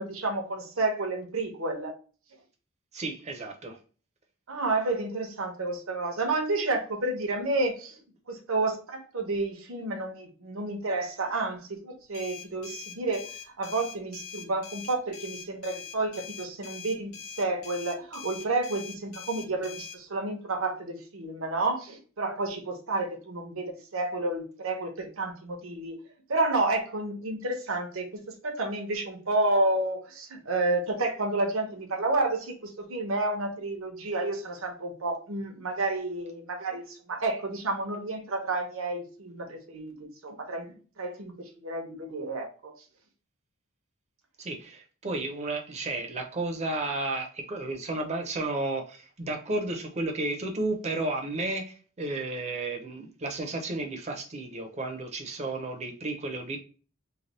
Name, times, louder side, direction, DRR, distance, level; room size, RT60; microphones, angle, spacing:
voice 1, 0.0-1.9 4.5-7.9 8.3-13.3 13.6-26.0 26.3-42.7, right 2 dB, 65° right, 3 dB, 0.9 m, -30 dB
voice 2, 2.9-3.8 44.4-56.6, right 2 dB, 30° right, 3 dB, 0.7 m, -32 dB
sound 1, 12.1-20.0, left 7 dB, 75° left, 0.7 m, -43 dB
3.3 x 2.3 x 4.1 m, 0.38 s
head